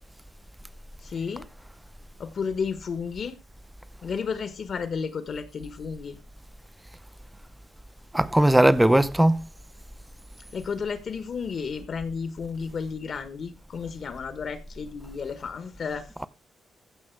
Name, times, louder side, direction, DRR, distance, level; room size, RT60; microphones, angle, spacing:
voice 1, 1.0-1.5 2.2-3.4 4.0-6.2 10.5-16.1, left 6 dB, 50° left, 1.3 m, -32 dB
voice 2, 8.1-9.5, right 1 dB, 5° right, 0.6 m, -19 dB
15.0 x 6.0 x 4.6 m
cardioid pair, 135°, 0 cm